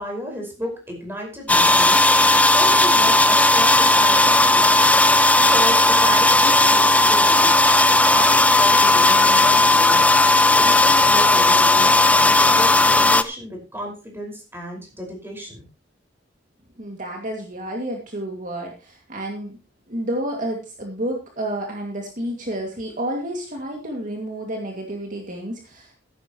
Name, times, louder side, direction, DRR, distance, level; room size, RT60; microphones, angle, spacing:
voice 1, 0.0-4.7 5.4-7.5 8.1-10.2 10.6-15.6, equal, 10° right, 1 dB, 5.3 m, -33 dB
sound 1, 1.5-13.2, left 2 dB, 10° left, 0.6 m, -15 dB
voice 2, 16.8-19.6 19.9-26.0, right 1 dB, 45° right, 1 dB, 2.3 m, -30 dB
15.0 x 11.5 x 3.1 m, 0.31 s
head